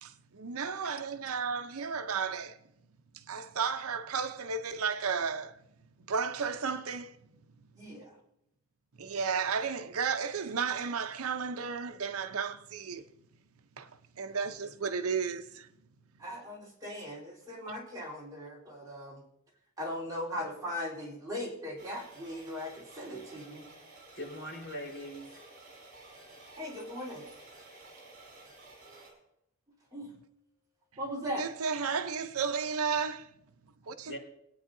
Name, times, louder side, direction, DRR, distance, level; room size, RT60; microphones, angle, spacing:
voice 1, 0.0-2.6 3.1-5.6 6.1-7.1 9.0-13.0 13.8-13.9 14.2-15.7 31.4-33.3 33.9-34.2, right 5 dB, 85° right, 0.7 m, -33 dB
voice 2, 0.9-1.3 24.1-25.4 34.1-34.2, equal, 55° left, 4.1 m, -42 dB
voice 3, 7.7-8.1 16.2-19.2 19.8-23.6 26.6-27.3 28.9-29.0 29.9-30.1 31.0-31.4 31.9-32.0, equal, 15° right, 3.8 m, -39 dB
sound 1, 21.8-29.1, right 2 dB, 45° right, 4.9 m, -53 dB
21.5 x 9.4 x 2.7 m
head